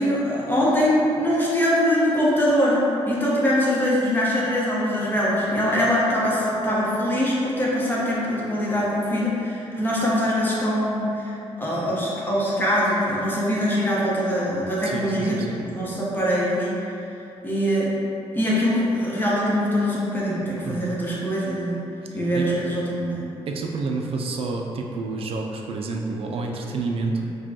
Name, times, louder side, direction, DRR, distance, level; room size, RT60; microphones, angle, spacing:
voice 1, 0.0-16.7 17.4-17.9 18.3-21.8 22.1-23.3, equal, 20° left, -6 dB, 0.9 m, -23 dB
voice 2, 14.8-15.6 20.7-20.8 22.3-22.5 23.5-27.2, right 3 dB, 60° right, 1 dB, 0.4 m, -29 dB
4.8 x 2.3 x 2.8 m, 3.0 s
cardioid pair, 85°, 11 cm